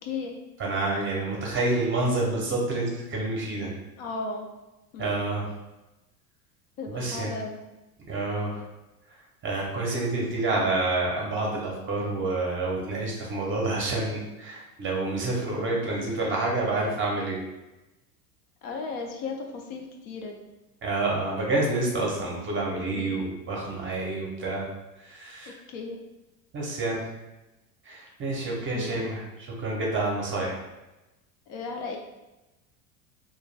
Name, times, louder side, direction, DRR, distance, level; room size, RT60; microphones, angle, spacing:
voice 1, 0.0-0.3 4.0-4.5 4.9-5.2 6.8-7.6 16.0-16.3 18.6-20.5 22.9-23.3 25.5-26.0 28.4-29.1 31.5-32.0, left 4 dB, 60° left, 1 dB, 0.6 m, -36 dB
voice 2, 0.6-3.7 5.0-5.5 6.9-7.3 8.1-8.6 9.4-17.4 20.8-24.7 25.0-25.6 26.5-27.1 27.8-29.2 29.6-30.6, right 2 dB, 25° right, -2 dB, 0.7 m, -28 dB
2.3 x 2.2 x 3.2 m, 1.0 s
hypercardioid pair, 100°, 48 cm